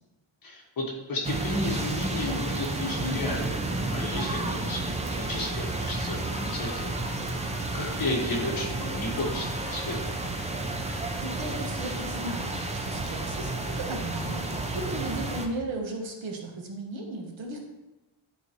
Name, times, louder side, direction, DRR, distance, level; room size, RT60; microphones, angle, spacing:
voice 1, 0.4-3.6 3.9-7.0 7.7-10.0, left 2 dB, 45° left, -1 dB, 1.5 m, -33 dB
sound 1, 1.2-15.5, right 2 dB, 15° right, 0.4 m, -31 dB
Ringtone, 6.2-8.3 9.1-12.5, left 5 dB, 70° left, 1.1 m, -49 dB
voice 2, 11.2-14.4 14.9-17.7, right 2 dB, 65° right, 1 dB, 1.3 m, -36 dB
11.0 x 4.0 x 3.1 m, 1.0 s
wide cardioid pair, 180°, 49 cm